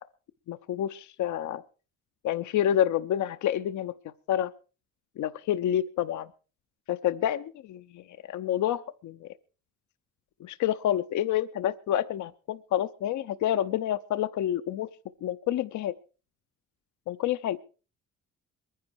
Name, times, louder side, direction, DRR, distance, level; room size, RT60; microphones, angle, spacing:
voice 1, 0.5-1.6 2.2-3.9 4.3-4.5 5.2-6.3 6.9-8.0 8.3-9.3 10.4-14.9 15.2-15.9 17.1-17.6, left 11 dB, 75° left, 12 dB, 0.8 m, -28 dB
22.0 x 10.5 x 4.7 m, 0.36 s
cardioid pair, 90°, 30 cm